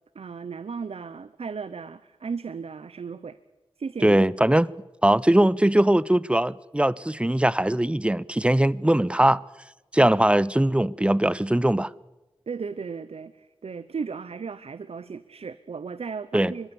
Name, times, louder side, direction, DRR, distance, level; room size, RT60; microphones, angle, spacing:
voice 1, 0.1-3.4 3.8-4.2 12.5-16.7, right 5 dB, 90° right, 0.7 m, -35 dB
voice 2, 4.0-4.7 5.0-9.4 9.9-11.9 16.3-16.5, right 1 dB, 10° right, 0.7 m, -20 dB
24.0 x 22.0 x 7.1 m
wide cardioid pair, 50°, 10 cm